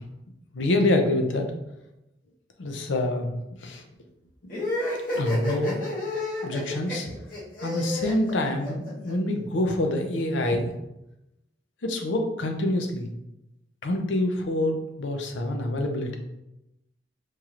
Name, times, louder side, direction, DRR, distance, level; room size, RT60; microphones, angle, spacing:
voice 1, 0.5-1.5 2.6-3.3 3.6-3.8 5.2-5.9 6.4-7.1 7.6-10.7 11.8-13.1 13.8-16.2, left 1 dB, 85° left, 4 dB, 0.6 m, -26 dB
sound 1, 4.5-9.1, left 2 dB, 50° left, 1.1 m, -30 dB
4.6 x 2.9 x 2.4 m, 0.90 s
head